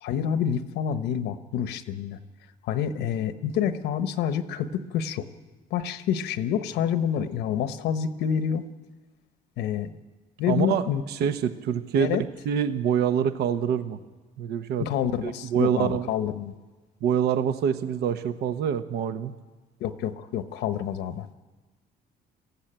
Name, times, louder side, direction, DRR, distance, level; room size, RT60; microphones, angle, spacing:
voice 1, 0.0-2.2 2.6-5.3 5.7-8.6 9.6-9.9 10.4-11.0 12.0-12.2 14.8-16.5 19.8-21.3, left 8 dB, 80° left, 11 dB, 1.1 m, -28 dB
voice 2, 10.5-12.2 12.5-14.0 14.4-14.9 15.2-16.1 17.0-19.3, right 8 dB, 75° right, 10 dB, 1.0 m, -25 dB
20.5 x 15.0 x 9.0 m, 1.3 s
cardioid pair, 110°, 17 cm